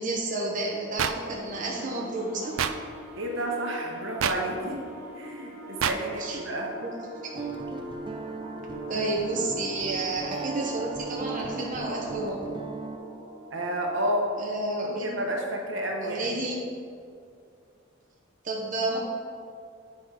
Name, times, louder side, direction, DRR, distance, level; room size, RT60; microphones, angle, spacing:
voice 1, 0.0-2.6 6.2-6.4 6.8-7.1 7.3-7.5 8.9-12.4 14.4-15.2 16.0-16.6 18.4-19.0, right 2 dB, 40° right, -3 dB, 0.8 m, -31 dB
sound 1, 1.0-1.1 2.6-2.7 4.2-4.4 5.8-6.0, right 8 dB, 85° right, 0.4 m, -25 dB
sound 2, 1.2-14.3, equal, 10° right, 1.2 m, -43 dB
voice 2, 3.2-4.8 5.1-6.7 13.5-14.3 15.0-16.4, right 1 dB, 70° right, 0 dB, 1.1 m, -30 dB
Guitar, 7.3-13.0, right 4 dB, 25° right, 0.5 m, -37 dB
8.7 x 4.3 x 4.8 m, 2.3 s
head